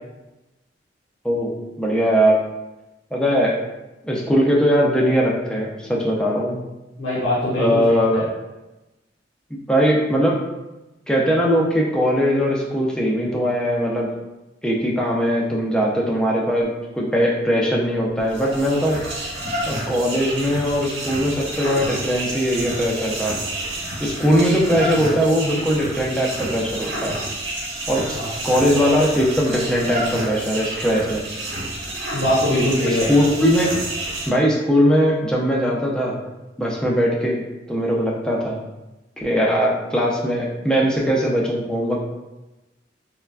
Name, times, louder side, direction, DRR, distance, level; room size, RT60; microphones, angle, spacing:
voice 1, 1.2-2.4 3.1-3.6 4.0-6.6 7.6-8.3 9.5-10.4 11.1-14.1 14.6-19.0 19.7-23.4 24.0-27.2 27.9-28.2 28.4-31.2 32.8-33.7 34.3-36.2 36.6-37.4 37.7-38.6 39.2-42.0, equal, 5° left, -3 dB, 0.4 m, -20 dB
voice 2, 7.0-8.2 28.1-28.3 32.1-33.1, left 1 dB, 80° left, -9 dB, 0.9 m, -22 dB
sound 1, 18.2-34.3, right 1 dB, 65° right, 0.8 m, -29 dB
3.3 x 2.1 x 2.3 m, 1.0 s
head